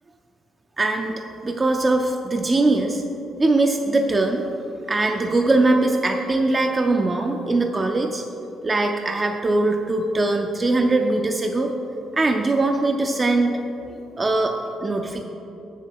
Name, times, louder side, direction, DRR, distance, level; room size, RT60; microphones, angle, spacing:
voice 1, 0.8-3.0 3.4-4.4 4.9-8.2 8.6-11.7 12.1-13.6 14.2-14.5 14.8-15.2, right 2 dB, 25° right, 3 dB, 0.5 m, -21 dB
7.3 x 6.8 x 4.6 m, 2.9 s
cardioid pair, 90°, 0 cm